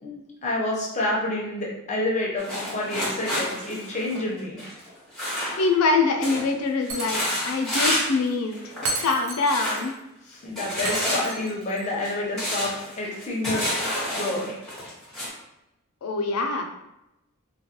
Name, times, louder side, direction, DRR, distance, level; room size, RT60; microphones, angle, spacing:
voice 1, 0.0-4.6 10.3-13.7 14.1-14.6, left 1 dB, 35° left, -3 dB, 0.6 m, -29 dB
sound 1, 2.4-5.9 6.2-6.5 6.8-8.2 8.5-9.1 9.4-9.9 10.5-15.3, left 1 dB, 5° left, 0.9 m, -29 dB
voice 2, 5.5-8.7 9.0-10.0 16.0-16.6, left 3 dB, 80° left, 3 dB, 0.4 m, -24 dB
Shatter, 6.9-7.6 7.8-7.9 8.8-9.8 10.8-11.8, right 2 dB, 90° right, 0.5 m, -33 dB
2.3 x 2.2 x 2.8 m, 0.89 s
head